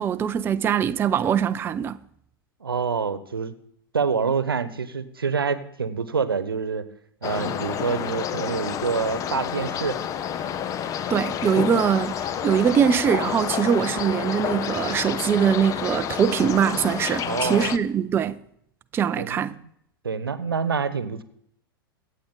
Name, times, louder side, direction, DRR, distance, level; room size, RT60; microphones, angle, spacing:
voice 1, 0.0-2.0 11.1-18.4 18.9-19.5, right 8 dB, 20° right, 0.5 m, -22 dB
voice 2, 2.6-3.5 3.9-6.9 7.2-10.0 17.2-17.7 19.2-19.4 20.0-21.2, right 5 dB, 75° right, 1.0 m, -26 dB
sound 1, 7.2-17.8, left 9 dB, 25° left, 0.8 m, -29 dB
24.0 x 8.4 x 3.9 m
figure-of-eight pair, 90°, 12 cm